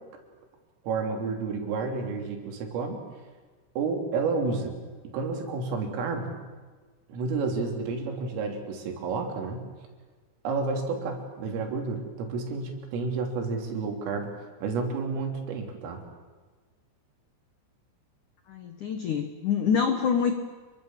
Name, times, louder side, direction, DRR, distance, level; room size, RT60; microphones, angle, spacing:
voice 1, 0.9-3.0 3.8-4.7 5.0-6.4 7.1-9.7 10.4-16.0, right 4 dB, 85° right, 3 dB, 5.9 m, -30 dB
voice 2, 18.5-20.3, left 7 dB, 75° left, 7 dB, 1.8 m, -26 dB
28.0 x 23.5 x 7.5 m, 1.4 s
omnidirectional pair, 5.8 m